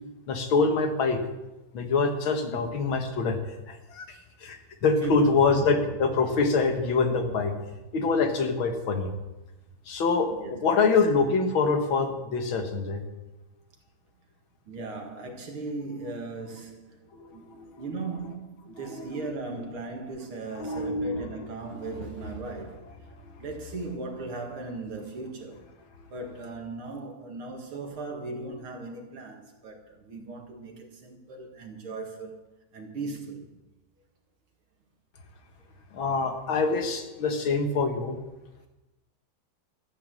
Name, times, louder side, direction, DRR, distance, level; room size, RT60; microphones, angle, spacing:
voice 1, 0.3-1.2 1.7-3.4 3.7-7.5 7.9-9.1 9.9-10.3 10.6-13.2 17.1-17.7 18.9-19.1 20.6-21.3 35.9-38.2, left 4 dB, 75° left, 2.3 m, -25 dB
voice 2, 5.0-5.6 10.3-10.9 14.7-22.8 23.4-25.6 26.1-33.5, right 3 dB, 85° right, 2.9 m, -38 dB
13.5 x 9.2 x 7.7 m
omnidirectional pair, 2.3 m